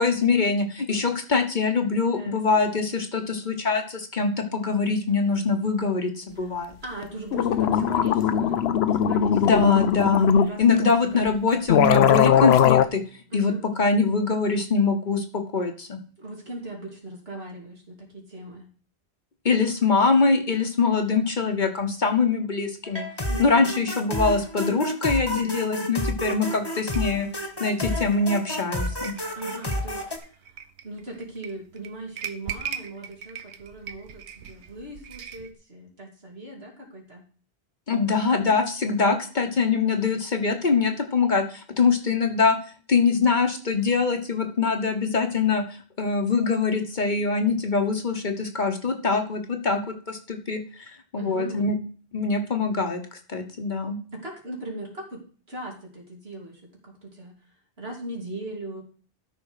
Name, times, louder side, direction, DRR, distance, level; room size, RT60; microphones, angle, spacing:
voice 1, 0.0-6.7 9.3-10.3 10.6-13.0 13.3-16.0 19.4-23.0 23.4-29.1 37.9-42.6 42.9-45.6 46.0-49.8 50.1-51.7 52.1-53.0 53.3-54.0, left 4 dB, 45° left, 5 dB, 1.2 m, -23 dB
voice 2, 2.1-2.8 6.3-6.5 6.8-9.6 10.2-11.3 13.3-13.6 16.2-18.7 23.3-23.7 25.3-26.0 29.3-30.6 30.8-37.2 51.2-51.7 54.1-55.2 55.5-57.4 57.8-58.8, right 2 dB, 65° right, -1 dB, 3.3 m, -39 dB
sound 1, 7.0-7.1 7.3-10.5 11.3-11.4 11.7-12.9, left 8 dB, 75° left, 0.9 m, -19 dB
sound 2, 22.9-30.2, left 1 dB, 20° left, 1.4 m, -30 dB
sound 3, 26.9-35.5, right 8 dB, 90° right, 1.1 m, -40 dB
13.0 x 5.5 x 4.8 m, 0.42 s
omnidirectional pair, 1.1 m